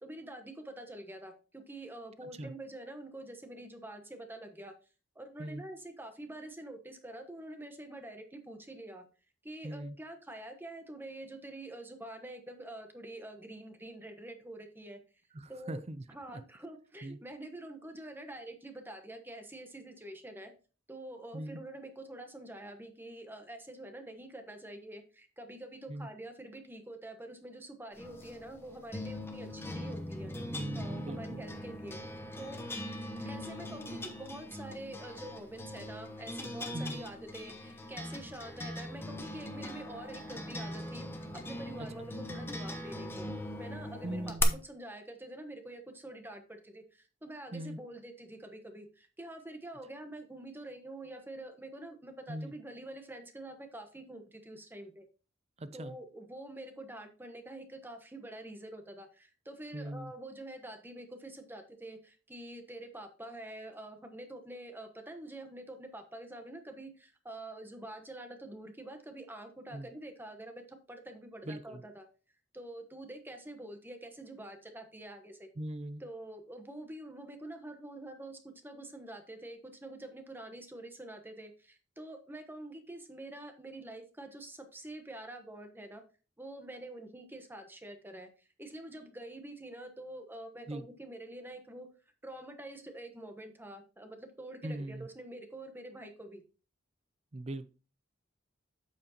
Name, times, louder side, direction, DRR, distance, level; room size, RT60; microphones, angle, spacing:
voice 1, 0.0-4.7 5.1-9.0 9.4-15.0 15.5-15.8 16.1-20.5 20.9-30.3 30.7-32.0 32.4-32.6 33.2-43.3 43.6-55.0 55.7-72.0 72.5-75.5 76.0-86.0 86.4-91.9 92.2-96.4, right 1 dB, 10° right, 1.1 m, -46 dB
voice 2, 2.2-2.5 5.4-5.6 9.6-10.0 15.3-16.4 17.0-17.2 21.3-21.6 25.9-26.1 30.5-31.4 36.7-37.0 41.8-42.1 44.0-44.6 47.5-47.8 52.3-52.5 55.6-56.0 59.7-60.1 69.7-69.9 71.4-71.8 75.6-76.0 90.7-90.9 94.6-95.1 97.3-97.7, right 1 dB, 35° right, 0.6 m, -40 dB
sound 1, 28.0-44.4, left 1 dB, 10° left, 0.9 m, -41 dB
8.2 x 7.1 x 2.8 m
head